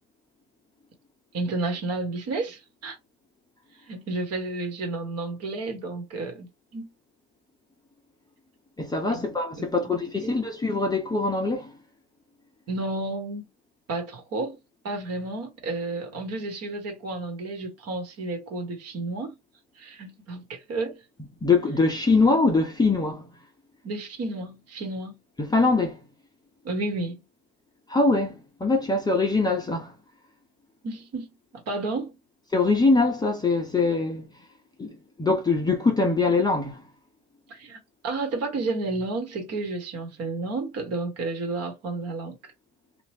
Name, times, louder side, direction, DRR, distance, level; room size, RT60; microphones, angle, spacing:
voice 1, 1.3-3.0 3.9-6.5 6.7-6.9 9.1-9.2 9.6-9.7 10.2-10.4 12.7-13.5 13.9-14.6 14.8-19.4 19.8-21.0 23.8-25.1 26.6-27.2 30.8-31.3 31.5-32.2 37.5-42.4, right 2 dB, 45° right, 1.4 m, -31 dB
voice 2, 8.8-11.7 21.4-23.3 25.4-26.0 27.9-29.9 32.5-34.3 34.8-36.8, left 3 dB, 10° left, 0.7 m, -23 dB
2.9 x 2.5 x 3.3 m
supercardioid pair, 115°, 35 cm